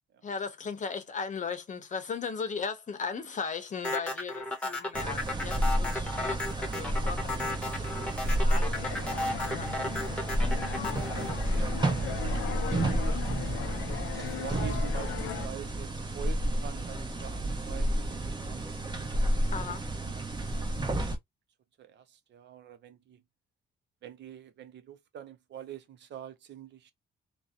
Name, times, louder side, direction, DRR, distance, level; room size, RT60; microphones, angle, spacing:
voice 1, 0.2-10.0 19.5-19.9, left 5 dB, 40° left, 0.7 m, -38 dB
sound 1, 3.8-12.2, left 1 dB, 5° left, 0.9 m, -34 dB
sound 2, 4.9-21.2, right 1 dB, 20° right, 0.7 m, -31 dB
sound 3, 8.7-15.5, left 11 dB, 85° left, 0.5 m, -38 dB
voice 2, 11.0-13.2 14.2-19.3 20.1-21.0 21.8-23.2 24.0-26.9, right 10 dB, 65° right, 0.6 m, -46 dB
2.7 x 2.0 x 2.3 m
cardioid pair, 90°, 20 cm